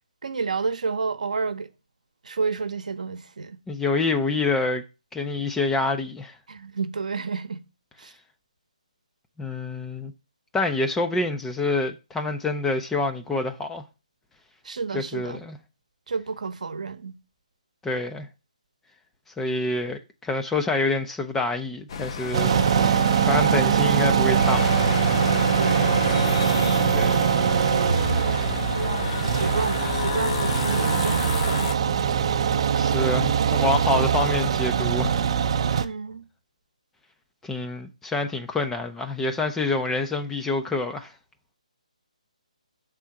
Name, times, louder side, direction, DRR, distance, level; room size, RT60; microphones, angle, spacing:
voice 1, 0.2-1.7 2.2-3.6 6.5-7.6 8.0-8.1 14.6-15.4 16.1-17.2 25.5-26.4 28.2-32.1 35.8-36.2, right 4 dB, 70° right, 0.8 m, -31 dB
voice 2, 3.7-4.8 5.1-6.4 9.4-10.1 10.5-13.8 14.9-15.6 17.8-18.3 19.4-22.5 22.9-24.8 26.9-27.3 28.3-28.4 32.8-35.2 35.7-35.8 37.4-41.1, left 2 dB, 5° left, 0.4 m, -27 dB
sound 1, 21.9-31.7, left 5 dB, 40° left, 0.7 m, -30 dB
sound 2, 22.3-35.8, right 8 dB, 45° right, 0.5 m, -22 dB
6.2 x 3.7 x 5.7 m
hypercardioid pair, 155°, 4 cm